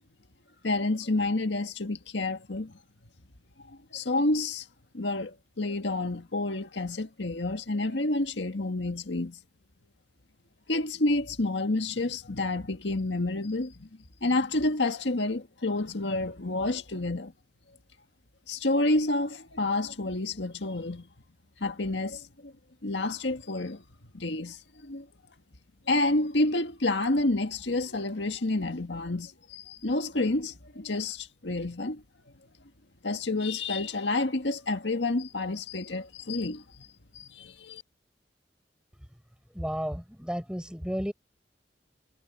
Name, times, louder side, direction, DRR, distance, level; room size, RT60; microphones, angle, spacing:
voice 1, 0.6-2.8 3.7-4.7 4.9-9.4 10.7-13.9 14.2-17.3 18.5-21.1 21.6-22.5 22.8-23.8 24.1-25.1 25.9-32.0 33.0-36.9 37.1-37.8, left 2 dB, 80° left, 1.8 m, -29 dB
voice 2, 39.5-41.1, equal, 5° right, 7.0 m, -32 dB
head